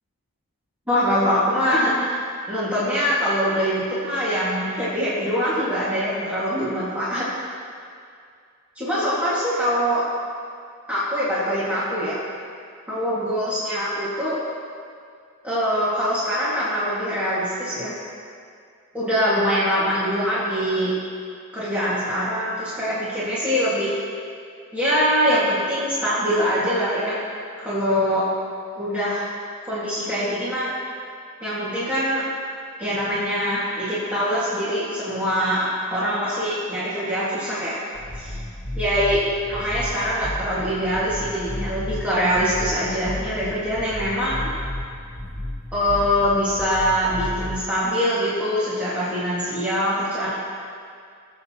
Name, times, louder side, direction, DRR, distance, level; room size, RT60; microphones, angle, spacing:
voice 1, 0.9-7.3 8.8-10.1 10.9-12.2 12.9-14.4 15.4-17.9 18.9-20.9 21.5-24.0 24.7-27.2 27.6-28.2 28.8-29.3 29.7-30.7 31.4-32.2 32.8-37.8 38.1-38.4 38.8-44.5 45.7-50.3, equal, 5° right, -11 dB, 1.9 m, -23 dB
sound 1, 37.9-47.6, left 1 dB, 50° left, 1.7 m, -33 dB
21.0 x 7.9 x 2.9 m, 2.3 s
head